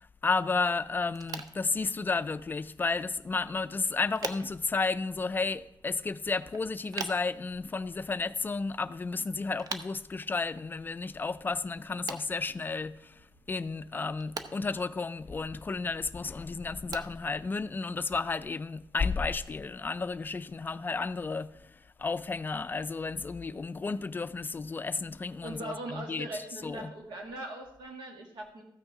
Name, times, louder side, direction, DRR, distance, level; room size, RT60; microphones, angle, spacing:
voice 1, 0.0-13.2 13.5-21.7 22.0-26.9, left 4 dB, 25° left, 0.3 m, -32 dB
sound 1, 1.1-18.3, right 5 dB, 55° right, 0.7 m, -47 dB
voice 2, 25.4-28.6, right 2 dB, 80° right, 2.0 m, -40 dB
14.0 x 6.2 x 4.8 m
cardioid pair, 120°, 8 cm